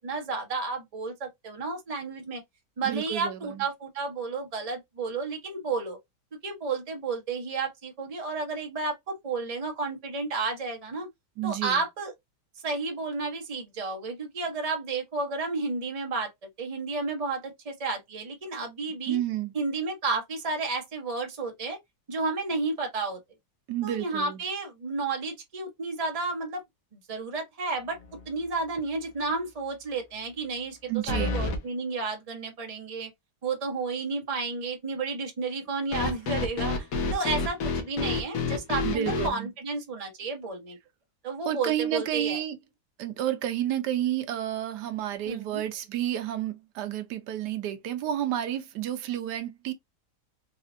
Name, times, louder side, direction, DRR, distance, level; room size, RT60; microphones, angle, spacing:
voice 1, 0.0-2.4 2.8-6.0 6.4-11.1 11.4-12.1 12.6-16.3 16.6-19.2 19.5-21.8 22.1-23.2 23.8-26.6 26.9-28.0 28.3-30.8 31.1-33.1 33.4-40.8 41.2-42.4 45.2-45.6, right 3 dB, 25° right, 0.9 m, -32 dB
voice 2, 2.8-3.6 11.4-11.8 19.1-19.5 23.7-24.4 30.9-31.4 38.8-39.5 41.4-42.6 43.0-49.7, right 12 dB, 80° right, 1.2 m, -30 dB
sound 1, 28.0-28.4 28.8-28.9 31.1-31.6 35.9-39.3, left 3 dB, 70° left, 1.4 m, -29 dB
4.2 x 2.4 x 2.5 m
omnidirectional pair, 1.8 m